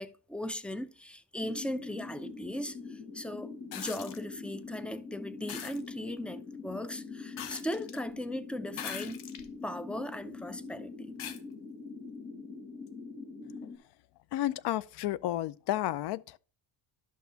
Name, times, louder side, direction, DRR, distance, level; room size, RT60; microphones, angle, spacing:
voice 1, 0.0-9.2 9.6-11.2, left 1 dB, 5° left, 0.3 m, -38 dB
sound 1, 1.4-13.8, left 4 dB, 25° left, 1.7 m, -44 dB
sound 2, 3.7-4.2 5.5-5.8 7.4-8.0 8.7-9.5 10.1-10.2 11.2-11.4 12.9-13.0, left 9 dB, 85° left, 1.0 m, -41 dB
voice 2, 14.3-16.4, left 13 dB, 60° left, 0.5 m, -32 dB
11.5 x 6.1 x 2.8 m
cardioid pair, 100°, 47 cm